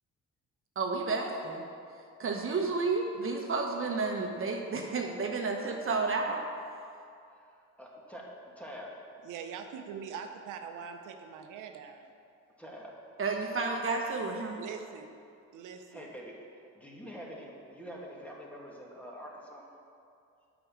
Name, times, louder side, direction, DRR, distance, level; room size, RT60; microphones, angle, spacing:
voice 1, 0.8-1.6 2.2-6.4 13.2-14.6, right 4 dB, 45° right, 2 dB, 1.1 m, -31 dB
voice 2, 7.3-8.3 8.6-8.9 12.6-12.9 15.9-19.7, equal, 5° left, -3 dB, 2.2 m, -46 dB
voice 3, 9.2-12.1 14.6-15.1 15.5-16.1, right 7 dB, 90° right, 5 dB, 0.8 m, -43 dB
8.6 x 6.1 x 7.4 m, 2.5 s
cardioid pair, 90°, 30 cm